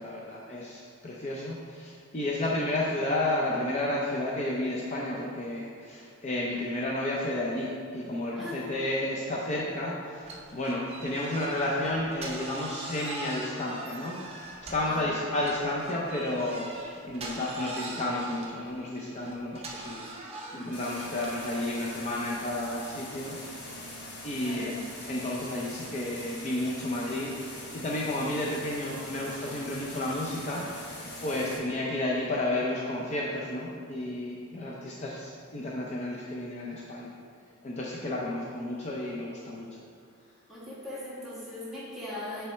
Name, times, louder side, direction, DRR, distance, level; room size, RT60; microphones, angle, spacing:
voice 1, 0.0-23.4 24.2-24.7 25.1-37.1 37.6-39.7, left 1 dB, 35° left, -4 dB, 0.5 m, -32 dB
voice 2, 8.3-8.7 14.8-15.1 24.4-24.8 31.4-31.5 40.5-42.4, left 1 dB, ahead, -9 dB, 1.5 m, -39 dB
sound 1, 10.2-15.0 15.4-21.5, right 2 dB, 30° right, 0.7 m, -42 dB
sound 2, 20.7-31.6, left 1 dB, 55° left, 1.2 m, -42 dB
7.4 x 3.4 x 4.3 m, 2.2 s
head